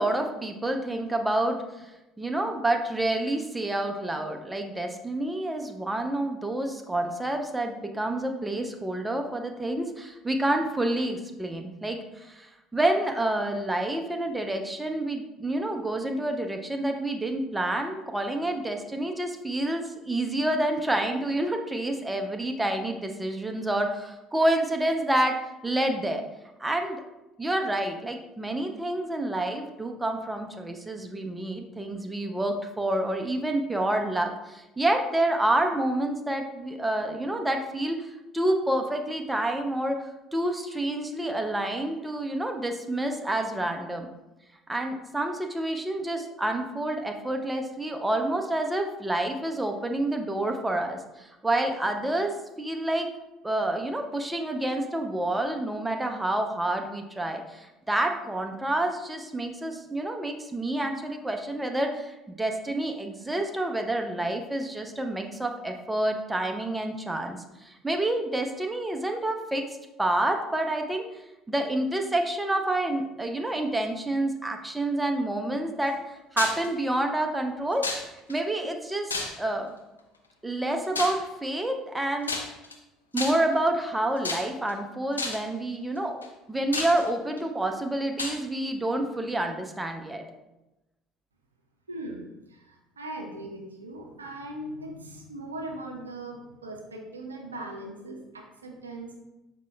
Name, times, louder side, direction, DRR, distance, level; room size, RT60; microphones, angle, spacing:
voice 1, 0.0-1.9 2.2-25.3 25.6-26.2 26.6-27.0 27.4-40.0 40.3-44.1 44.7-53.1 53.4-69.6 70.0-71.0 71.5-75.9 76.3-77.8 78.3-79.7 80.4-82.3 83.1-90.2, right 1 dB, 10° right, 4 dB, 0.5 m, -28 dB
sound 1, 76.4-76.7 77.8-78.3 79.1-79.6 80.9-81.3 82.2-82.7 83.2-83.6 84.2-84.7 85.2-85.5 86.2-86.3 86.7-87.4 88.2-88.4, left 3 dB, 85° left, 0.3 m, -31 dB
voice 2, 91.9-99.2, right 1 dB, 80° right, 1 dB, 0.4 m, -39 dB
5.1 x 2.1 x 3.2 m, 0.98 s
figure-of-eight pair, 60°, 0 cm